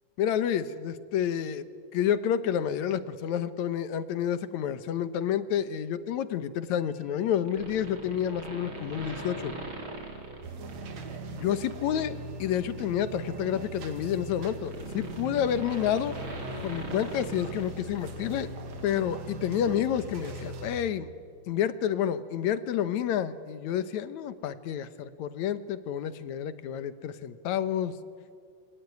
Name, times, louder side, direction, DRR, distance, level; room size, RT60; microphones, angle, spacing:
voice 1, 0.2-1.7 1.9-9.5 11.3-16.2 16.6-18.5 18.8-21.1 21.5-27.9, left 9 dB, 70° left, 13 dB, 2.2 m, -29 dB
sound 1, 7.5-11.2 11.6-11.9 13.1-18.4 18.7-18.8, right 1 dB, 35° right, 4.0 m, -41 dB
sound 2, 10.4-20.8, right 2 dB, 55° right, 3.0 m, -40 dB
28.0 x 22.5 x 9.4 m, 2.2 s
omnidirectional pair, 3.8 m